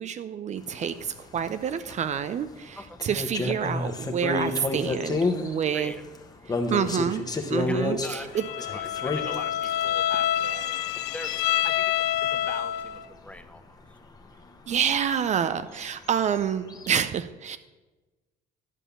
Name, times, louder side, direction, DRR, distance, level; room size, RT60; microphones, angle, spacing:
voice 1, 0.0-5.9 6.5-7.2 7.5-8.4 14.7-17.6, right 8 dB, 45° right, 12 dB, 0.5 m, -28 dB
sound 1, 0.6-11.8 12.1-12.3 12.7-12.9 13.3-13.4 13.8-13.9 14.2-14.3 15.3-17.0, left 3 dB, 20° left, 1.1 m, -31 dB
voice 2, 5.7-6.0 7.7-11.3 11.6-13.8, left 1 dB, 5° left, 9 dB, 0.7 m, -42 dB
Bowed string instrument, 8.4-13.0, left 12 dB, 80° left, 0.4 m, -27 dB
11.0 x 5.5 x 6.9 m, 1.2 s
cardioid pair, 110°, 17 cm